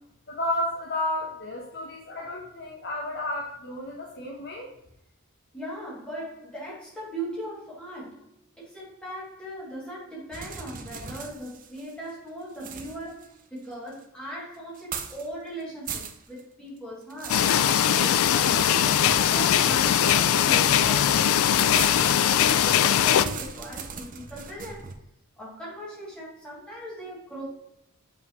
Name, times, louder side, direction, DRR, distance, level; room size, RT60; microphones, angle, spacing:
voice 1, 0.3-4.7, left 1 dB, 50° left, -1 dB, 0.9 m, -32 dB
voice 2, 5.5-8.3 8.6-24.9 25.4-27.4, right 1 dB, 5° left, -7 dB, 2.6 m, -39 dB
sound 1, 10.3-12.1 12.5-14.0 14.7-15.3 15.6-16.4 16.8-20.5 21.7-24.9, right 6 dB, 35° right, 0.6 m, -39 dB
sound 2, 17.3-23.3, left 10 dB, 70° left, 0.3 m, -21 dB
7.5 x 5.4 x 3.1 m, 0.79 s
head